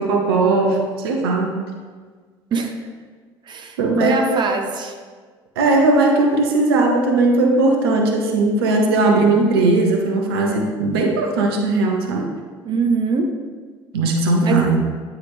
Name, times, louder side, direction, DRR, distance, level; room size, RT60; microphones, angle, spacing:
voice 1, 0.0-1.5 3.8-4.4 5.6-12.3 13.9-14.8, right 2 dB, 70° right, 2 dB, 0.7 m, -18 dB
voice 2, 3.5-4.9 12.6-13.3 14.4-14.7, right 4 dB, 35° right, 4 dB, 0.7 m, -22 dB
9.3 x 3.6 x 3.2 m, 1.5 s
figure-of-eight pair, 55°, 13 cm